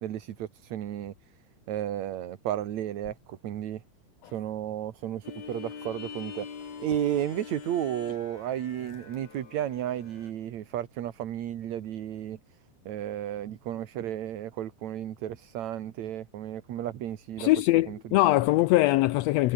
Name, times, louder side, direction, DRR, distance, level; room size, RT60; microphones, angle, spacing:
voice 1, 0.0-1.1 1.7-3.8 4.3-6.5 6.8-12.4 12.9-17.5 17.9-18.2, right 11 dB, 70° right, 2.7 m, -33 dB
sound 1, 5.2-10.3, left 6 dB, 65° left, 4.5 m, -43 dB
voice 2, 17.4-19.5, left 17 dB, 80° left, 1.6 m, -22 dB
omnidirectional pair, 3.5 m